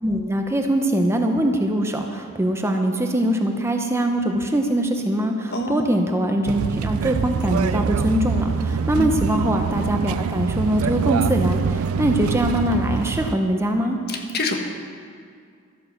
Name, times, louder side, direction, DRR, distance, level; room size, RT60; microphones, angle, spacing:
voice 1, 0.0-14.0, right 1 dB, 15° right, 3 dB, 0.8 m, -22 dB
voice 2, 5.5-5.8 9.0-9.2 14.1-14.6, left 2 dB, 50° left, 3 dB, 1.3 m, -26 dB
sound 1, 6.5-13.4, right 6 dB, 90° right, 0.4 m, -24 dB
12.5 x 9.2 x 6.6 m, 2.2 s
head